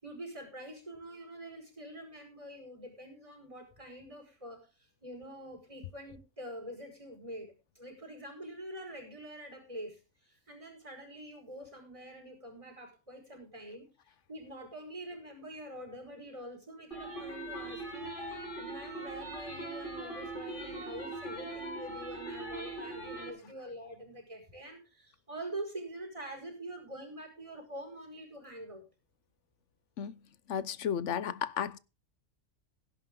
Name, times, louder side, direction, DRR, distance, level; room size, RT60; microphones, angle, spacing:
voice 1, 0.0-13.9 14.3-18.1 18.5-28.8, right 1 dB, 25° right, 5.4 m, -45 dB
sound 1, 16.9-23.3, right 2 dB, 45° left, 6.9 m, -41 dB
voice 2, 30.5-31.8, left 8 dB, 70° left, 1.1 m, -33 dB
16.5 x 10.5 x 3.8 m
omnidirectional pair, 1.3 m